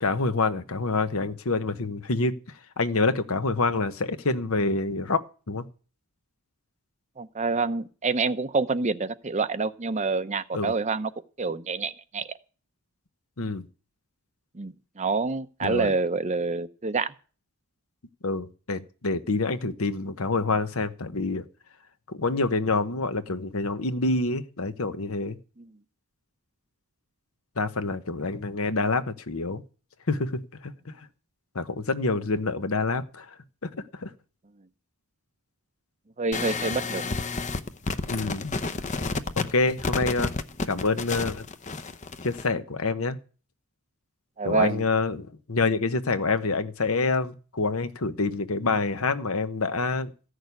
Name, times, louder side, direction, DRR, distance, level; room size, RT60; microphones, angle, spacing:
voice 1, 0.0-2.4 2.8-5.6 10.5-10.7 13.4-13.7 15.6-15.9 18.2-21.4 22.1-25.4 27.6-29.6 30.1-31.0 31.5-33.3 33.6-34.1 38.1-38.6 39.4-40.3 40.7-41.4 42.2-43.2 44.4-50.1, left 3 dB, 70° left, 11 dB, 1.1 m, -27 dB
voice 2, 7.2-11.1 11.4-12.3 14.5-17.1 25.6-25.7 36.2-37.1 44.4-44.8, right 4 dB, 30° right, 12 dB, 0.7 m, -27 dB
sound 1, 36.3-42.5, left 3 dB, 35° left, 0.8 m, -31 dB
15.0 x 6.5 x 9.6 m, 0.38 s
head